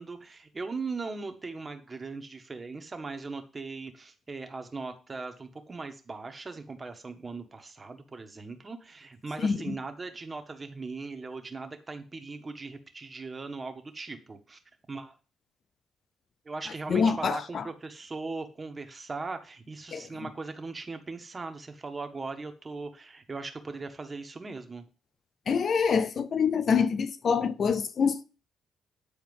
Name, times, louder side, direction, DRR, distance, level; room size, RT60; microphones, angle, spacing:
voice 1, 0.0-14.6 14.9-15.1 16.4-24.8, right 3 dB, 25° right, 1.5 m, -39 dB
voice 2, 9.4-9.7 16.9-17.6 19.9-20.1 25.5-28.2, left 6 dB, 50° left, 0.6 m, -26 dB
9.8 x 4.3 x 5.4 m
cardioid pair, 90°, 0 cm